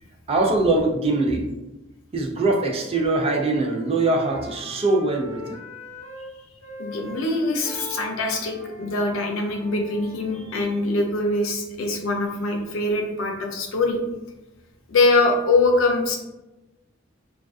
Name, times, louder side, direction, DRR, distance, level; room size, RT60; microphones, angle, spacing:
voice 1, 0.3-1.5 2.1-5.6, right 2 dB, 30° right, 1 dB, 0.3 m, -22 dB
Wind instrument woodwind instrument, 2.7-6.3 6.6-10.9, equal, 35° left, 1.1 m, -42 dB
voice 2, 6.8-14.0 14.9-16.2, left 2 dB, 90° left, 2 dB, 0.5 m, -23 dB
2.5 x 2.3 x 2.2 m, 1.0 s
head